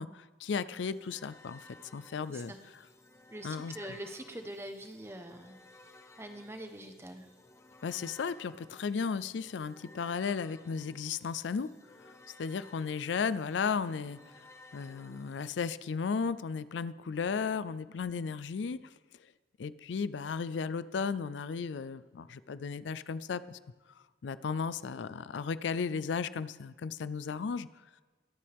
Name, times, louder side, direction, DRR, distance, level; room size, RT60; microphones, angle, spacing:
voice 1, 0.0-1.6 1.9-2.5 3.4-3.7 7.8-11.7 12.0-12.1 12.4-14.5 14.7-18.8 19.6-23.6 24.2-27.7, left 5 dB, 85° left, 16 dB, 0.4 m, -35 dB
sound 1, 0.8-15.6, left 2 dB, 15° left, 0.7 m, -57 dB
voice 2, 2.3-2.6 3.3-5.6 6.2-7.3, right 1 dB, 15° right, 6 dB, 1.0 m, -44 dB
23.0 x 8.5 x 3.5 m, 1.3 s
head